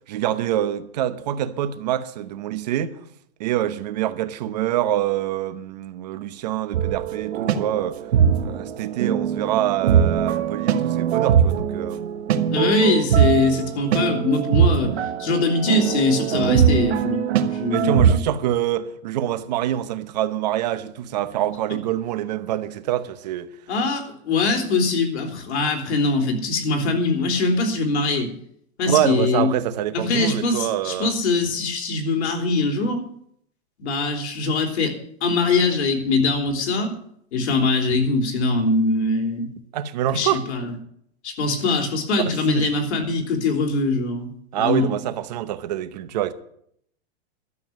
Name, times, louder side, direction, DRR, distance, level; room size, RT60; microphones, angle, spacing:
voice 1, 0.1-3.0 3.4-8.0 8.4-12.1 17.7-23.5 28.9-31.1 39.7-40.4 42.5-42.7 44.5-46.3, right 11 dB, 40° right, 0.8 m, -25 dB
sound 1, 6.7-18.2, right 8 dB, 70° right, 1.2 m, -21 dB
voice 2, 12.5-18.2 23.7-28.3 28.8-29.5 29.9-33.0 33.8-35.0 35.2-36.9 37.3-39.5 40.1-40.7 41.2-44.9, left 3 dB, 80° left, 3.5 m, -22 dB
12.5 x 7.1 x 9.5 m
supercardioid pair, 180°, 33 cm